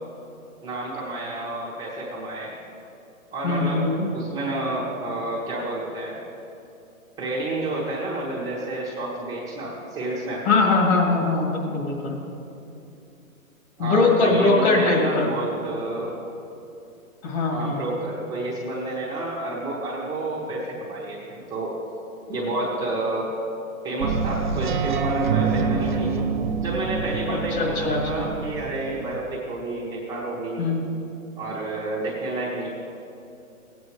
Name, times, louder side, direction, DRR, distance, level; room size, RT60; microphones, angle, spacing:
voice 1, 0.6-2.6 3.3-3.9 4.1-6.2 7.2-10.5 13.8-16.1 17.5-21.7 22.3-23.3 23.8-26.1 26.6-30.7 31.4-32.7, right 2 dB, 10° right, -7 dB, 0.9 m, -30 dB
voice 2, 3.4-4.1 10.4-12.2 13.8-15.3 17.2-17.8 27.3-28.2 30.6-30.9, left 3 dB, 45° left, -1 dB, 2.3 m, -21 dB
sound 1, 24.0-29.2, right 5 dB, 40° right, 0.4 m, -26 dB
15.5 x 8.5 x 3.2 m, 2.8 s
hypercardioid pair, 140°, 42 cm